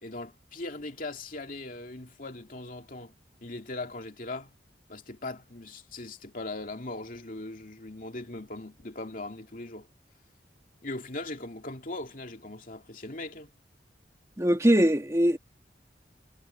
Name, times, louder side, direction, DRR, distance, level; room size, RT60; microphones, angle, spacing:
voice 1, 0.0-3.1 3.4-4.5 4.9-9.9 10.8-13.5, left 2 dB, 50° left, 2.6 m, -39 dB
voice 2, 14.4-15.4, equal, 15° right, 1.8 m, -22 dB
head